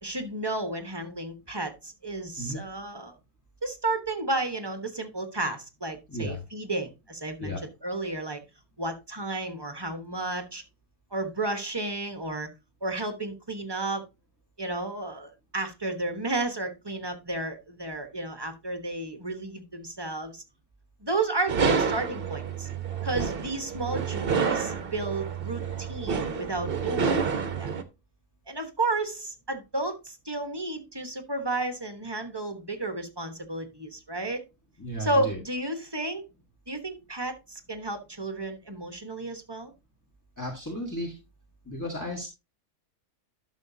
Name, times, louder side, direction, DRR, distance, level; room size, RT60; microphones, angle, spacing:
voice 1, 0.0-3.1 3.6-7.5 7.8-8.4 8.8-10.6 11.1-12.5 12.8-14.1 14.6-20.4 21.0-22.7 23.0-27.7 28.5-34.4 35.0-36.3 36.7-39.7, right 2 dB, 20° right, 7 dB, 1.1 m, -32 dB
voice 2, 6.1-6.4 7.4-7.6 34.8-35.4 40.4-41.1 41.6-42.3, equal, 10° left, 1 dB, 1.5 m, -34 dB
sound 1, 21.5-27.8, right 6 dB, 45° right, 1.0 m, -29 dB
11.5 x 6.4 x 2.7 m, 0.25 s
omnidirectional pair, 1.6 m